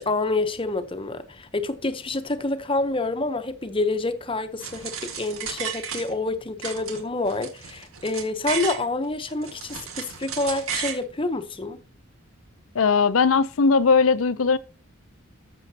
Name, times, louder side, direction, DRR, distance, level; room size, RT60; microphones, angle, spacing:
voice 1, 0.0-11.8, left 2 dB, 25° left, 0.8 m, -27 dB
sound 1, 4.6-6.3 6.6-8.8 9.3-11.0, right 7 dB, 75° right, 1.7 m, -33 dB
voice 2, 12.7-14.6, left 5 dB, 75° left, 0.6 m, -19 dB
13.5 x 7.0 x 2.8 m
head